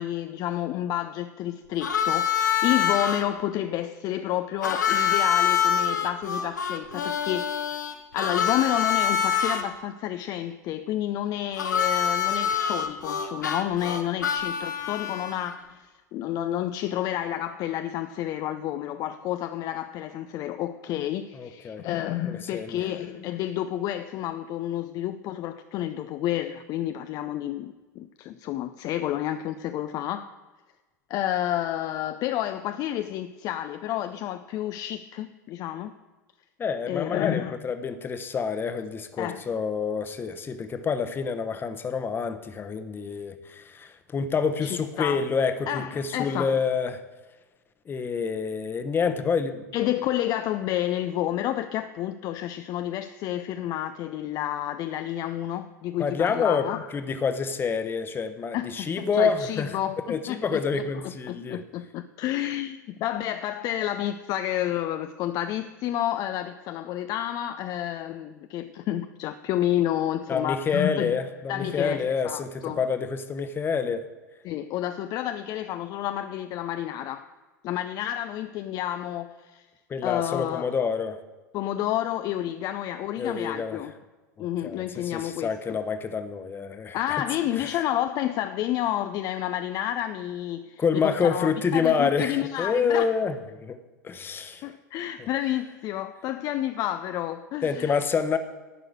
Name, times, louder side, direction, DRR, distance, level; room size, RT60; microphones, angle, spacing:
voice 1, 0.0-7.8 8.1-30.3 31.1-35.9 36.9-37.5 39.2-39.4 44.6-45.3 45.7-46.6 49.7-56.9 58.5-71.2 71.5-72.8 74.4-77.3 77.6-79.7 80.0-80.6 81.5-83.9 84.4-85.8 86.9-93.1 94.6-98.0, left 12 dB, 40° left, 0.5 m, -30 dB
Harmonica, 1.8-3.2 4.6-9.6 11.6-15.5, left 8 dB, 75° left, 1.2 m, -25 dB
voice 2, 21.3-21.8 22.2-22.8 36.6-47.0 47.9-49.6 56.0-59.8 60.1-61.6 70.3-74.1 79.9-81.2 83.2-83.8 84.4-87.2 87.6-87.8 90.8-93.8 94.0-94.7 97.6-98.4, left 5 dB, 20° left, 1.0 m, -28 dB
11.0 x 6.4 x 8.7 m
figure-of-eight pair, 85°, 10 cm